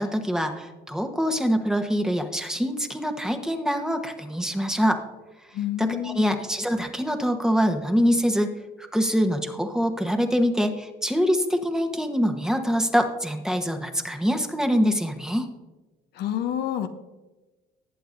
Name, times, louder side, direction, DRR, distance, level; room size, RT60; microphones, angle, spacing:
voice 1, 0.0-5.0 5.8-8.5 8.9-15.5, equal, 5° right, 4 dB, 1.1 m, -24 dB
voice 2, 5.5-6.4 16.2-16.9, left 11 dB, 75° left, 7 dB, 0.8 m, -28 dB
19.0 x 7.9 x 2.6 m, 1.1 s
cardioid pair, 110°, 17 cm